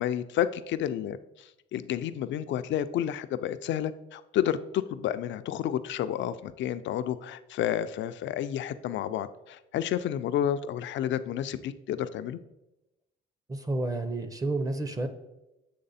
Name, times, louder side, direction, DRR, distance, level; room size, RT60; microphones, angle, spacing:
voice 1, 0.0-12.4, left 10 dB, 70° left, 12 dB, 0.4 m, -30 dB
voice 2, 13.5-15.1, right 2 dB, 15° right, 9 dB, 0.6 m, -30 dB
7.7 x 3.3 x 4.1 m, 0.95 s
cardioid pair, 90°, 20 cm